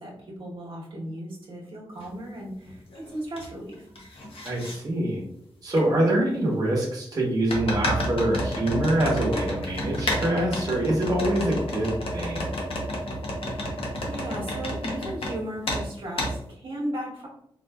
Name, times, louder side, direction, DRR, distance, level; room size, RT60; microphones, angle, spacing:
voice 1, 0.0-3.9 5.9-6.1 13.3-17.3, right 1 dB, 65° right, -4 dB, 1.0 m, -36 dB
sound 1, 2.0-2.1 2.7-3.5 3.7-4.8 5.8-5.9 7.5-15.3 15.7-15.8 16.2-16.3, equal, 70° left, 0.9 m, -30 dB
voice 2, 4.4-5.2 5.6-12.5, right 1 dB, 40° right, -3 dB, 0.9 m, -25 dB
4.3 x 2.4 x 2.3 m, 0.72 s
wide cardioid pair, 105°, 10 cm